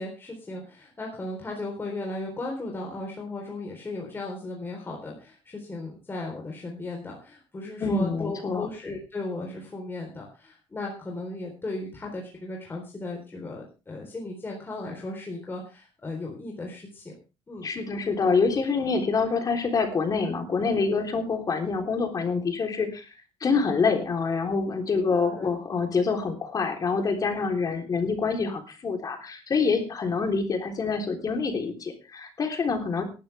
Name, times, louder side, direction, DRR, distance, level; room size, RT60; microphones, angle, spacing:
voice 1, 0.0-17.2 17.5-17.7 25.2-25.5, left 2 dB, 25° left, 0 dB, 3.9 m, -36 dB
voice 2, 7.8-8.7 17.6-33.0, left 4 dB, 40° left, 5 dB, 3.5 m, -26 dB
17.0 x 12.0 x 3.4 m, 0.31 s
cardioid pair, 115°, 10 cm